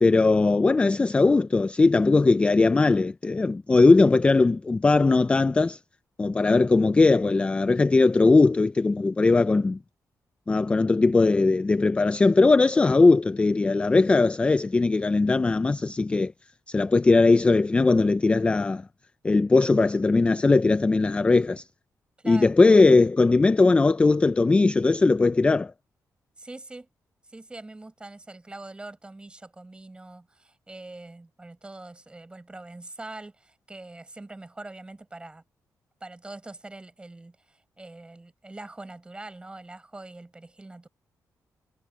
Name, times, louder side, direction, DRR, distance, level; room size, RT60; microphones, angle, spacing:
voice 1, 0.0-5.8 6.2-9.8 10.5-16.3 16.7-18.8 19.2-21.6 22.3-25.7, left 3 dB, 15° left, 0.3 m, -19 dB
voice 2, 22.2-22.5 26.4-26.9 27.3-35.4 36.0-40.9, right 2 dB, 15° right, 4.9 m, -43 dB
wide cardioid pair, 145°, 7 cm